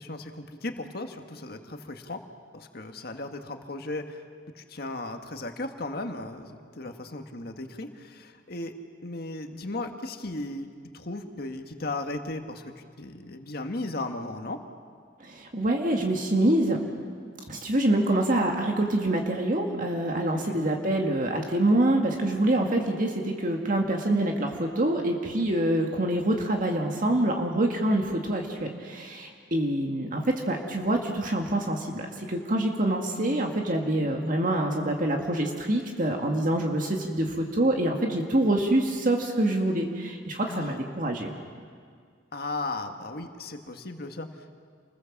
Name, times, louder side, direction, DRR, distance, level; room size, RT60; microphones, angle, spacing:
voice 1, 0.0-2.2 2.5-4.2 4.6-8.7 9.0-10.7 10.9-14.6 20.3-20.6 40.5-40.7 42.3-44.6, left 2 dB, 55° left, 5 dB, 1.8 m, -36 dB
voice 2, 15.2-16.8 17.5-41.3, right 1 dB, 45° right, 1 dB, 2.0 m, -26 dB
28.5 x 21.0 x 7.4 m, 2.1 s
head